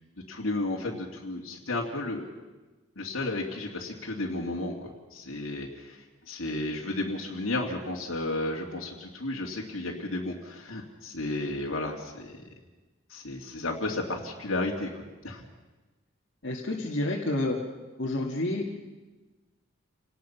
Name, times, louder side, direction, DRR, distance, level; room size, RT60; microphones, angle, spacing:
voice 1, 0.3-2.3 3.0-12.4 13.1-15.4, left 2 dB, 80° left, -1 dB, 2.6 m, -33 dB
voice 2, 16.4-17.6 18.0-18.8, left 1 dB, 60° left, -3 dB, 2.0 m, -29 dB
29.0 x 18.5 x 5.8 m, 1.2 s
head